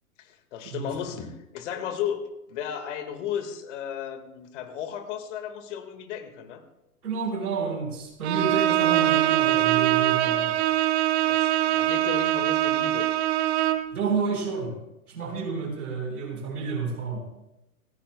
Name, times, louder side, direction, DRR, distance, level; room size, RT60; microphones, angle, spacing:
voice 1, 0.2-6.6 11.3-13.1, left 8 dB, 55° left, 8 dB, 1.8 m, -34 dB
voice 2, 7.0-10.5 13.9-14.8 15.1-17.2, right 5 dB, 80° right, 2 dB, 4.2 m, -30 dB
Bowed string instrument, 8.2-13.9, right 13 dB, 45° right, 1.2 m, -23 dB
27.5 x 10.5 x 2.2 m, 0.92 s
hypercardioid pair, 115°, 44 cm